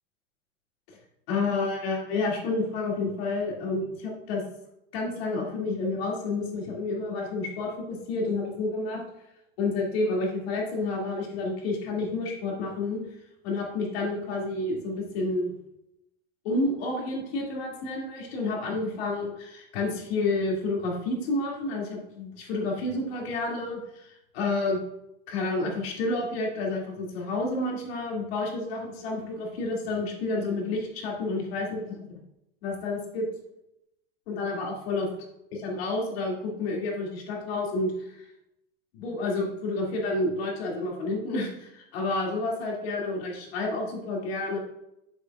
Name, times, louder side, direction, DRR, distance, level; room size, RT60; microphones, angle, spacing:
voice 1, 1.3-4.4 4.9-9.0 9.6-13.0 13.4-15.5 16.4-24.8 25.3-32.2 32.6-33.3 34.3-35.1 35.5-38.3 38.9-44.6, left 2 dB, 80° left, -1 dB, 2.3 m, -30 dB
7.9 x 6.7 x 2.4 m, 0.86 s
supercardioid pair, 145°, 30 cm